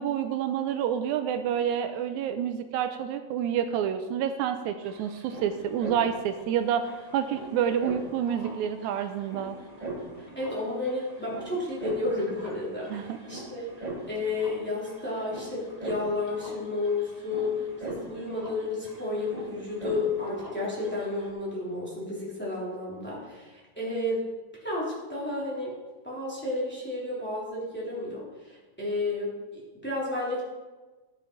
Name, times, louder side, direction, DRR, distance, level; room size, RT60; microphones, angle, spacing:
voice 1, 0.0-9.6 12.9-13.2, right 9 dB, 85° right, 9 dB, 1.9 m, -28 dB
sound 1, 4.5-21.3, right 2 dB, 25° right, 0.9 m, -41 dB
voice 2, 10.3-24.2 24.6-25.7 26.0-30.4, left 2 dB, 5° left, -7 dB, 2.9 m, -32 dB
12.0 x 7.0 x 4.6 m, 1.3 s
omnidirectional pair, 3.4 m